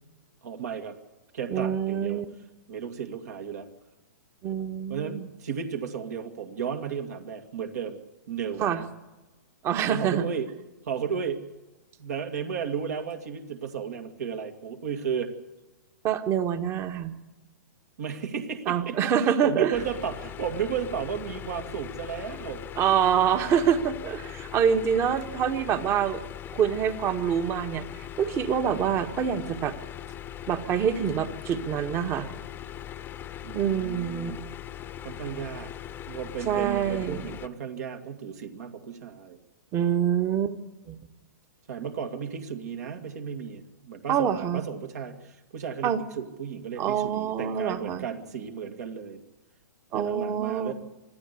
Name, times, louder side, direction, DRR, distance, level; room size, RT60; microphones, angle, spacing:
voice 1, 0.4-1.0 1.3-2.2 2.7-3.7 4.9-8.0 8.3-8.9 9.9-10.5 10.8-11.5 12.0-15.3 18.0-22.7 33.4-34.4 35.0-35.7 36.1-39.4 41.7-49.2 49.9-50.7, right 7 dB, 60° right, 5 dB, 2.3 m, -34 dB
voice 2, 1.5-2.2 4.4-5.3 8.6-8.8 9.6-10.2 16.0-17.1 18.7-19.7 22.8-26.2 26.5-29.7 30.5-32.3 33.5-34.3 36.4-37.2 39.7-40.6 40.9-41.1 44.1-44.6 45.8-46.0 46.8-48.1 49.9-50.7, right 8 dB, 25° right, 10 dB, 1.5 m, -26 dB
sound 1, 19.7-37.5, left 10 dB, 20° left, 1.0 m, -40 dB
25.0 x 14.0 x 8.4 m, 1.1 s
figure-of-eight pair, 115°, 10 cm